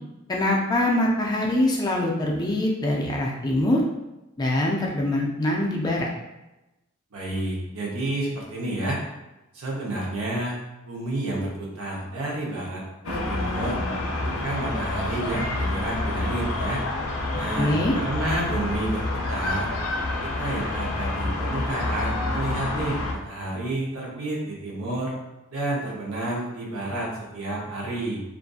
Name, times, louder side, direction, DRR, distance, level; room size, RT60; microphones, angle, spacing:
voice 1, 0.3-3.8 4.4-6.1 17.6-17.9, left 1 dB, 20° left, -2 dB, 0.3 m, -23 dB
voice 2, 7.1-9.0 9.5-10.6 10.9-13.8 14.2-16.8 17.3-19.7 20.2-25.1 25.5-28.2, right 1 dB, 90° right, -3 dB, 0.8 m, -30 dB
sound 1, 13.0-23.1, left 2 dB, 85° left, 0.5 m, -28 dB
2.5 x 2.5 x 2.3 m, 0.99 s
head